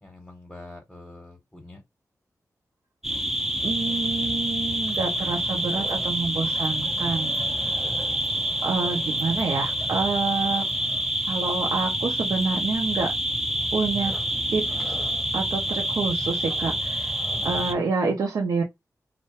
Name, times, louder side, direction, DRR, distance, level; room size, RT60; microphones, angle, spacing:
voice 1, 0.0-1.8 17.3-17.8, left 2 dB, 10° left, 0.8 m, -44 dB
sound 1, 3.0-17.7, right 1 dB, 5° right, 0.3 m, -27 dB
voice 2, 3.6-7.4 8.6-10.7 11.3-13.1 13.7-14.1 14.5-15.0 15.3-17.1 17.4-18.6, right 4 dB, 85° right, 0.4 m, -27 dB
2.3 x 2.0 x 2.8 m
wide cardioid pair, 100°, 6 cm